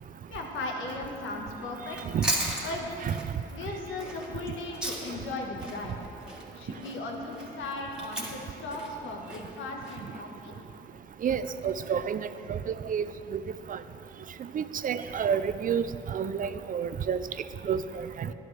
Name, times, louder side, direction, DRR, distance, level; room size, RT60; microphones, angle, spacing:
voice 1, 0.3-2.0 2.6-2.9 3.5-6.0 6.5-10.5, left 2 dB, 75° left, 1 dB, 1.5 m, -37 dB
Chewing mastication, 1.9-5.3 5.6-10.0, right 1 dB, 5° right, 2.3 m, -35 dB
voice 2, 11.2-13.0 13.3-13.4 13.7-13.8 14.5-15.8 16.1-17.2 17.6-18.3, right 7 dB, 45° right, 12 dB, 0.4 m, -29 dB
11.5 x 11.5 x 3.4 m, 2.8 s
cardioid pair, 90°, 20 cm